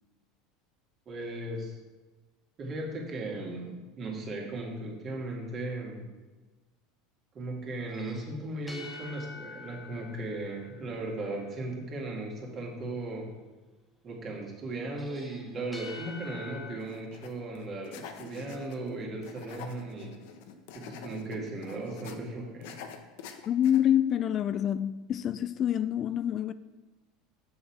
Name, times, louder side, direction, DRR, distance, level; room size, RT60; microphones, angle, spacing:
voice 1, 1.1-1.8 2.6-6.0 7.3-13.3 14.0-20.1 20.7-22.8, right 2 dB, 40° right, 2.4 m, -37 dB
sound 1, 7.9-11.4 15.0-16.7, left 3 dB, 10° left, 1.3 m, -46 dB
sound 2, 16.8-17.3 17.6-18.9 19.2-22.2 22.6-23.8, left 7 dB, 70° left, 0.8 m, -46 dB
voice 2, 23.5-26.5, left 10 dB, 40° left, 0.3 m, -27 dB
7.0 x 6.3 x 4.8 m
hypercardioid pair, 80°, 0 cm